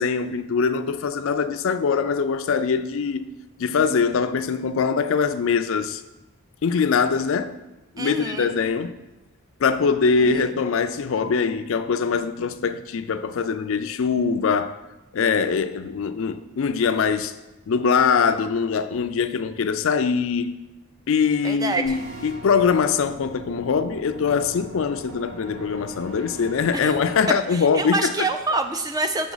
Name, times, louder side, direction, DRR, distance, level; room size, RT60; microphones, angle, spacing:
voice 1, 0.0-3.3 3.6-6.0 6.6-7.6 8.0-8.9 9.6-14.8 15.1-17.3 17.7-20.5 21.1-28.3, left 5 dB, 65° left, 0.4 m, -22 dB
voice 2, 8.0-8.5 10.2-10.5 21.4-22.0 26.7-26.9 27.5-29.3, right 2 dB, 15° right, 0.4 m, -27 dB
sound 1, 21.8-27.2, right 1 dB, 90° right, 1.4 m, -40 dB
6.0 x 6.0 x 3.9 m
head